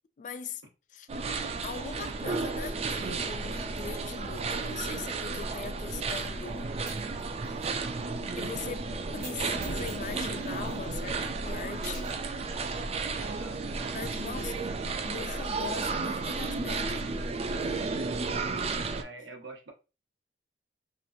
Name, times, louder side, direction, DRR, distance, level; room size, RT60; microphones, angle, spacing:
voice 1, 0.2-0.6 0.9-1.1 1.6-6.7 7.4-7.8 8.2-12.2 13.9-14.7 15.0-17.1 17.6-17.8, left 6 dB, 45° left, 0.3 m, -41 dB
sound 1, 1.1-19.0, right 3 dB, 35° right, 0.3 m, -33 dB
Coin (dropping), 6.9-7.7 8.0-8.1 9.1-9.4 9.6-11.2 11.7-12.2, right 4 dB, 60° right, 1.0 m, -48 dB
voice 2, 7.7-8.2 13.1-13.7 18.9-19.7, right 2 dB, 90° right, 0.8 m, -46 dB
3.0 x 2.4 x 2.6 m
head